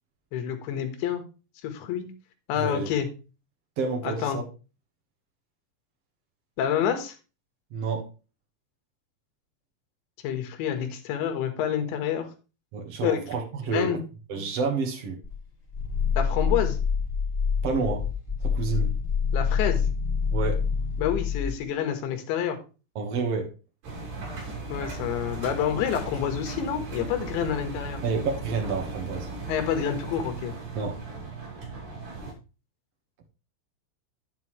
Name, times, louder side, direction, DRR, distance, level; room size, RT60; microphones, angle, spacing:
voice 1, 0.3-1.2 1.6-2.1 2.5-3.1 4.0-4.4 6.6-7.2 10.2-12.3 13.0-13.2 13.7-14.0 16.2-16.8 19.3-19.8 21.0-22.6 24.7-28.0 29.5-30.5, left 9 dB, 75° left, 6 dB, 3.6 m, -28 dB
voice 2, 2.5-2.9 3.8-4.4 7.7-8.1 12.7-14.0 14.3-15.2 17.6-18.1 18.4-19.0 20.3-20.6 22.9-23.5 28.0-29.3 30.7-31.0, right 4 dB, 80° right, 2 dB, 1.4 m, -29 dB
Growling, 15.2-21.6, left 6 dB, 25° left, 1.5 m, -26 dB
Engine, 23.8-32.3, right 3 dB, 50° right, 4.2 m, -37 dB
9.2 x 8.1 x 3.2 m, 0.32 s
omnidirectional pair, 5.4 m